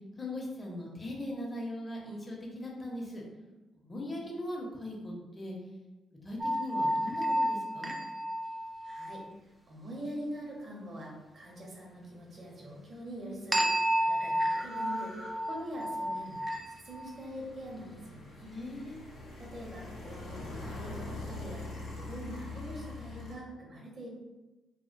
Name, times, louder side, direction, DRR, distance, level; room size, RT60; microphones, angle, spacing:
voice 1, 0.2-3.2 3.7-5.6 6.2-8.0 18.5-19.0, left 1 dB, 30° left, -2 dB, 0.7 m, -39 dB
sound 1, 6.4-9.3 13.5-17.1, equal, 20° right, 0.3 m, -31 dB
voice 2, 8.8-9.2 9.7-13.7 14.0-15.2 15.5-18.5 19.4-24.1, equal, 55° right, -2 dB, 0.7 m, -44 dB
sound 2, 12.7-12.8 13.0-23.4, left 3 dB, 80° left, 0.6 m, -44 dB
2.4 x 2.1 x 2.5 m, 1.1 s
supercardioid pair, 55°, 0 cm